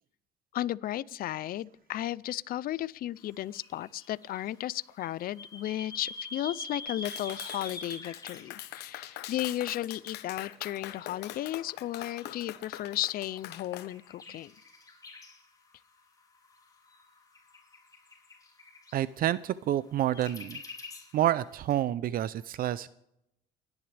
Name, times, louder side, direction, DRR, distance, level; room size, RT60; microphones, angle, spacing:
voice 1, 0.5-14.5, left 13 dB, 60° left, 0.6 m, -34 dB
sound 1, 3.5-9.5 10.3-10.4 10.7-15.4 16.4-19.0 20.0-21.3 21.7-21.8, left 3 dB, 20° left, 4.2 m, -46 dB
Clapping, 7.0-13.9, left 13 dB, 80° left, 1.1 m, -43 dB
voice 2, 18.9-20.6 21.1-22.9, right 12 dB, 60° right, 0.6 m, -28 dB
29.5 x 11.0 x 3.4 m
cardioid pair, 110°, 17 cm